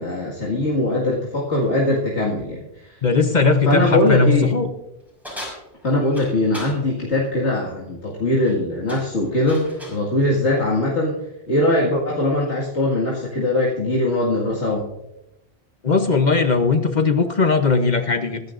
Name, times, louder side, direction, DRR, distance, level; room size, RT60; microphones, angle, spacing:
voice 1, 0.0-3.0 3.7-4.5 5.8-11.2 11.5-14.9, left 1 dB, 90° left, -5 dB, 2.3 m, -21 dB
voice 2, 3.0-4.7 15.8-18.4, left 4 dB, 45° left, 8 dB, 0.9 m, -18 dB
sound 1, 5.2-6.8 8.3-8.6 8.9-10.0, equal, ahead, 6.0 m, -37 dB
23.5 x 11.0 x 2.5 m, 0.90 s
omnidirectional pair, 1.1 m